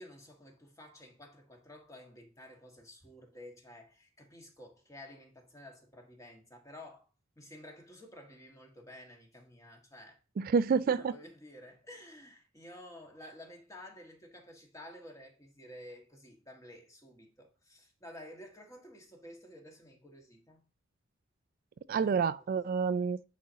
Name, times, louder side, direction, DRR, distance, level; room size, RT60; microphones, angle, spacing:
voice 1, 0.0-7.1 7.3-10.2 10.7-20.6 22.0-22.3, left 1 dB, 15° left, 1.6 m, -52 dB
voice 2, 10.4-11.2 21.9-23.2, right 5 dB, 50° right, 0.3 m, -28 dB
9.8 x 4.3 x 2.7 m
head